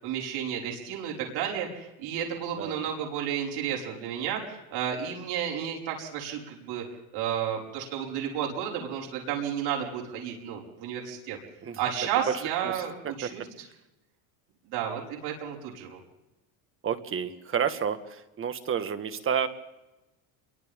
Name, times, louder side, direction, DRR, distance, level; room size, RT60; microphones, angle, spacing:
voice 1, 0.0-6.8 7.1-11.4 11.8-13.7 14.7-16.0, right 8 dB, 65° right, -2 dB, 5.7 m, -32 dB
voice 2, 16.8-18.0 18.4-19.5, right 8 dB, 30° right, 9 dB, 1.8 m, -29 dB
29.5 x 23.5 x 3.8 m, 0.99 s
cardioid pair, 135°, 41 cm